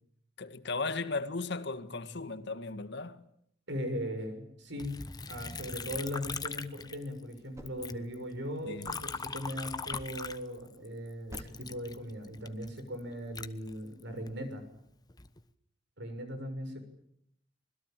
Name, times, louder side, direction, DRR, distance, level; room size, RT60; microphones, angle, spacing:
voice 1, 0.4-3.2 8.6-8.9, left 3 dB, 60° left, 1.7 m, -36 dB
voice 2, 3.7-4.9 5.3-14.6 16.0-16.8, equal, 65° right, 6.5 m, -39 dB
Liquid, 4.8-7.4 7.7-10.9 11.3-14.3 14.9-15.4, left 4 dB, 20° left, 1.1 m, -41 dB
sound 1, 7.6-9.5 9.9-10.4 11.3-11.7, equal, 15° right, 4.0 m, -51 dB
26.0 x 21.5 x 9.0 m
head